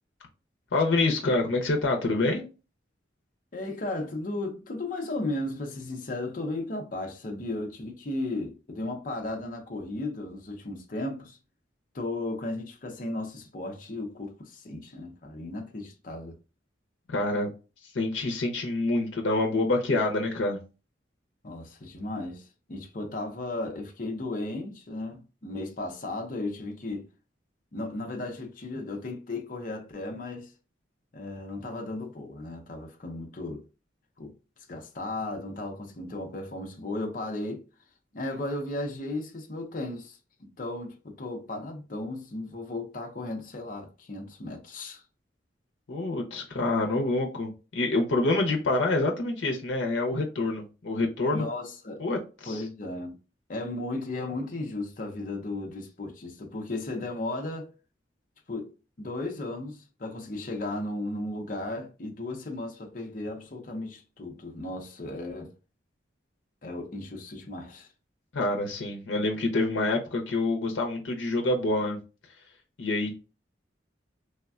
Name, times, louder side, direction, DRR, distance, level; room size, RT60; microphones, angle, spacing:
voice 1, 0.7-2.4 17.1-17.5 17.9-20.6 45.9-51.5 52.0-52.2 52.4-52.6 68.3-72.0 72.8-73.2, left 2 dB, 90° left, 0.6 m, -26 dB
voice 2, 3.5-11.4 11.9-16.4 21.4-27.1 27.7-30.5 31.1-33.6 34.2-34.3 34.7-37.6 38.1-45.0 51.3-52.0 52.5-53.1 53.5-57.7 58.5-65.5 66.6-67.9, left 2 dB, 45° left, 0.6 m, -35 dB
3.4 x 2.1 x 2.3 m
head